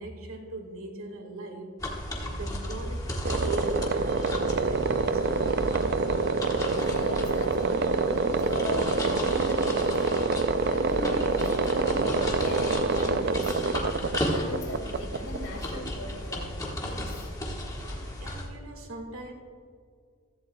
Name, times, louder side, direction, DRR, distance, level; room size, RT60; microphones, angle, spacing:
voice 1, 0.0-5.6 17.7-19.3, right 2 dB, 80° right, 3 dB, 1.8 m, -40 dB
sound 1, 1.8-18.5, left 1 dB, 15° left, 1.5 m, -34 dB
sound 2, 3.3-15.9, right 4 dB, 50° right, 0.4 m, -26 dB
voice 2, 6.7-13.9 14.3-17.3, left 1 dB, 85° left, 1 dB, 2.6 m, -39 dB
15.5 x 14.5 x 2.3 m, 2.2 s
head